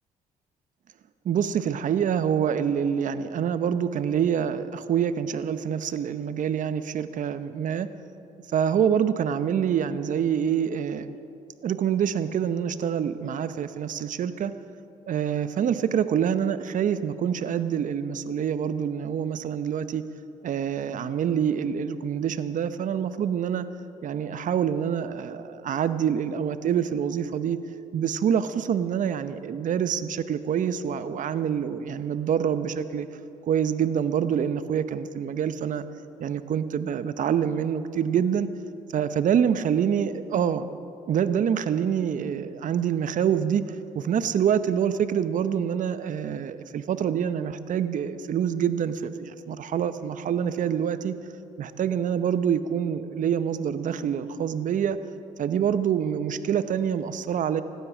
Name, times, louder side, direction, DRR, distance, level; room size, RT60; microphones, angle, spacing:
voice 1, 1.2-7.9 8.5-11.2 11.6-14.5 15.1-20.0 20.4-23.7 24.0-27.6 27.9-33.1 33.5-35.8 36.2-38.5 38.9-40.7 41.1-43.6 43.9-51.1 51.6-55.0 55.4-57.6, right 8 dB, 55° right, 12 dB, 0.8 m, -26 dB
17.0 x 12.0 x 6.1 m, 2.6 s
supercardioid pair, 70°, 16 cm